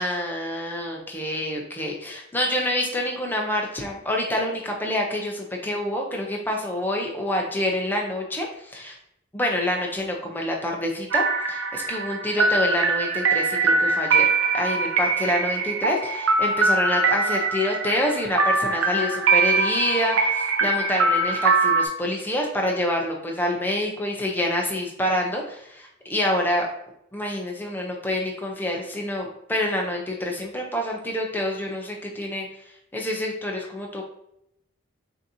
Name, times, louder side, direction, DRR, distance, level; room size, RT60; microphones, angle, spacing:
voice 1, 0.0-8.9 9.3-14.3 14.5-26.7 27.1-32.5 32.9-34.0, left 1 dB, 10° left, 0 dB, 0.7 m, -27 dB
sound 1, 11.1-21.9, right 3 dB, 75° right, 0.6 m, -22 dB
6.2 x 2.8 x 2.8 m, 0.77 s
head